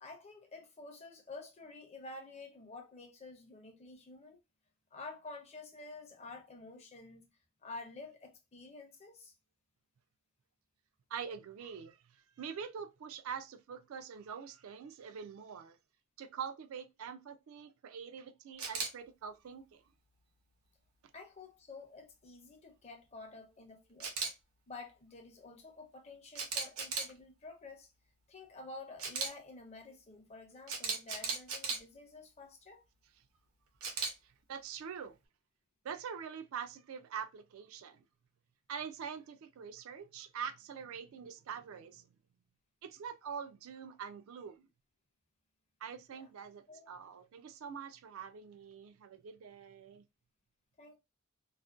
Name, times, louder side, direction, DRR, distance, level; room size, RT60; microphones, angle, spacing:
voice 1, 0.0-4.4 4.9-7.3 7.6-9.3 21.1-24.2 24.7-27.9 28.3-32.8 46.1-46.3 46.7-46.9 50.8-51.0, left 3 dB, 30° left, 0.5 m, -50 dB
voice 2, 11.1-12.0 12.4-15.8 16.2-19.8 34.2-35.2 35.8-38.0 38.7-42.1 42.8-44.7 45.8-50.0, right 7 dB, 70° right, 0.3 m, -44 dB
Camera, 18.6-18.9 24.0-24.3 26.3-27.1 29.0-29.3 30.7-31.8 33.8-34.1, right 4 dB, 85° right, 0.7 m, -35 dB
2.4 x 2.1 x 2.4 m
head